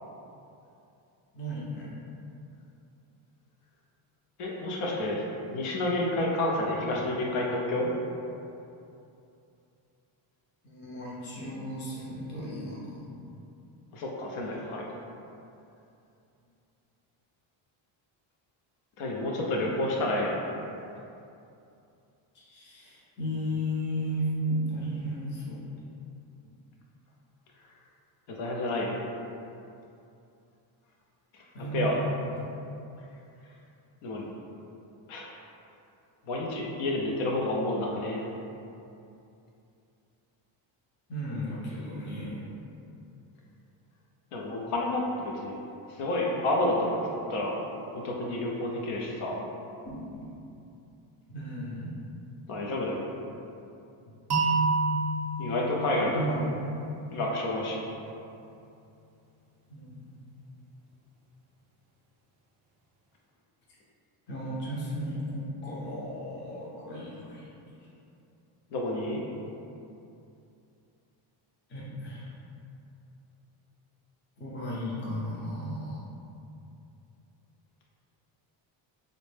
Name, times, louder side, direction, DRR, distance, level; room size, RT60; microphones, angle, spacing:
voice 1, 1.3-1.9 10.6-13.2 22.3-25.6 31.5-32.1 41.1-42.5 49.8-50.3 51.3-51.9 55.8-56.6 59.7-60.3 64.3-67.5 71.7-72.3 74.4-76.0, equal, 25° left, -6 dB, 0.5 m, -34 dB
voice 2, 4.4-5.2 5.5-7.9 13.9-14.8 19.0-20.4 28.3-28.9 31.3-31.4 31.7-32.0 34.0-34.3 35.1-35.3 36.2-38.3 44.3-45.6 45.9-49.3 52.5-53.0 55.4-56.1 57.1-57.8 68.7-69.2, left 1 dB, 80° left, -2 dB, 0.8 m, -29 dB
sound 1, 54.3-57.2, right 3 dB, 35° right, 0.4 m, -29 dB
3.9 x 2.1 x 3.2 m, 2.7 s
cardioid pair, 170°, 49 cm